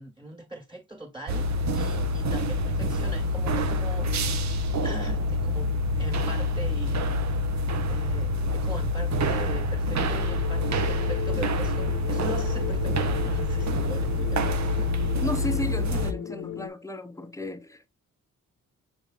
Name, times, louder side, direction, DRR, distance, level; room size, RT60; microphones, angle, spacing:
voice 1, 0.0-4.4 4.8-7.1 7.8-14.9 15.3-15.4, right 2 dB, 15° right, 1.5 m, -41 dB
sound 1, 1.3-16.1, left 1 dB, 55° right, 0.7 m, -26 dB
sound 2, 10.0-16.7, left 9 dB, 60° left, 0.8 m, -37 dB
voice 2, 15.2-17.9, left 1 dB, 10° left, 0.6 m, -34 dB
5.3 x 3.4 x 2.4 m
supercardioid pair, 50°, 34 cm